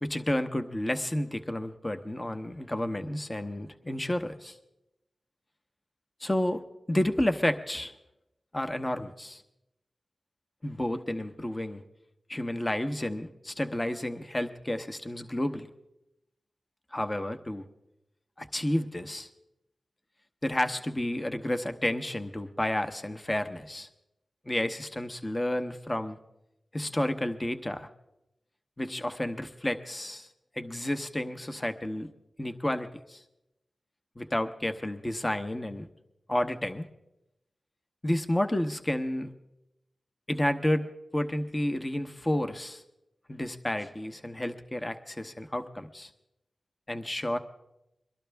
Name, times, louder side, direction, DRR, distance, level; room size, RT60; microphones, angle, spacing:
voice 1, 0.0-4.6 6.2-6.6 6.9-7.9 8.5-9.4 10.6-11.8 12.3-15.7 16.9-17.6 18.4-19.3 20.4-23.9 24.4-26.2 26.7-27.9 28.8-30.3 30.5-32.1 32.4-33.2 34.2-35.9 36.3-36.9 38.0-39.3 40.3-40.9 41.1-42.8 43.3-46.1 46.9-47.4, left 1 dB, 25° left, 7 dB, 1.0 m, -31 dB
23.0 x 12.0 x 3.5 m, 0.88 s
cardioid pair, 40°, 0 cm